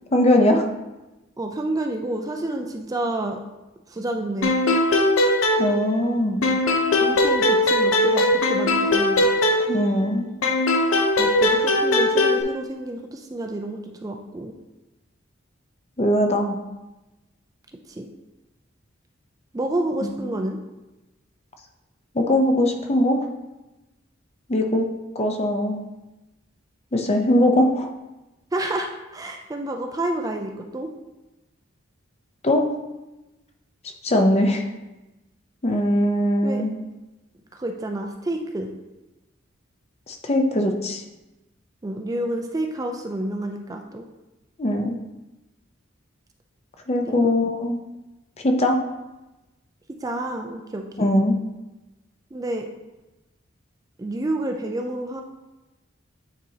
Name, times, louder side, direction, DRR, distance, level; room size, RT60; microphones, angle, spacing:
voice 1, 0.1-0.7 5.6-6.4 9.7-10.3 16.0-16.6 20.0-20.2 22.1-23.2 24.5-24.9 25.2-25.8 26.9-27.9 32.4-32.7 34.0-34.6 35.6-36.7 40.1-41.0 44.6-45.0 46.9-47.8 48.4-48.8 51.0-51.4, left 1 dB, 30° left, 4 dB, 0.6 m, -20 dB
voice 2, 1.4-3.4 3.9-4.6 7.0-9.3 11.2-14.5 17.9-18.1 19.5-20.6 28.5-30.9 36.4-36.6 37.5-38.7 41.8-44.0 47.0-47.3 50.0-51.1 52.3-52.7 54.0-55.2, right 1 dB, 20° right, 3 dB, 0.4 m, -29 dB
sound 1, 4.4-6.1 6.4-10.0 10.4-12.4, left 1 dB, 80° left, 0.7 m, -20 dB
9.0 x 4.3 x 2.8 m, 1.0 s
head